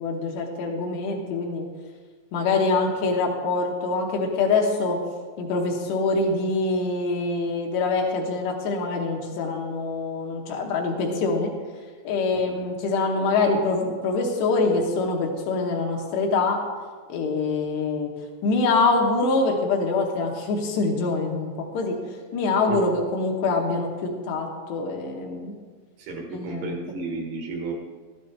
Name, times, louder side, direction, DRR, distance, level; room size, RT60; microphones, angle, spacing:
voice 1, 0.0-1.6 2.3-5.0 5.4-11.5 12.0-16.6 17.1-18.1 18.4-22.0 22.3-25.6 26.3-27.0, left 3 dB, 75° left, 0 dB, 3.0 m, -24 dB
voice 2, 26.0-27.7, right 3 dB, 85° right, 1 dB, 3.8 m, -33 dB
12.5 x 12.0 x 3.3 m, 1.5 s
omnidirectional pair, 5.3 m